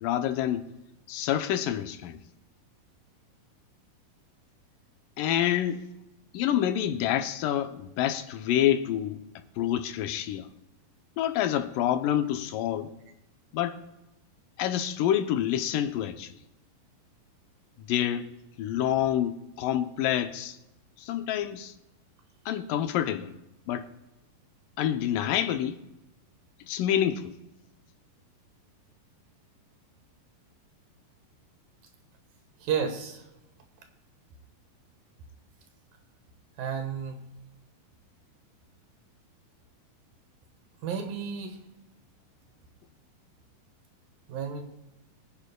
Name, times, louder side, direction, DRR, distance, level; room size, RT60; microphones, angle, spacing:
voice 1, 0.0-0.7 1.1-2.2 5.2-5.8 6.3-9.2 9.6-10.5 11.2-12.9 13.5-13.8 14.6-16.3 17.8-18.3 18.6-20.6 21.0-21.7 22.5-23.3 23.7-23.9 24.8-25.8 26.7-27.4, left 11 dB, 80° left, 2.3 m, -27 dB
voice 2, 32.6-33.2 36.6-37.2 40.8-41.6 44.3-44.6, right 7 dB, 85° right, 3.1 m, -31 dB
23.5 x 9.9 x 2.2 m
omnidirectional pair, 3.9 m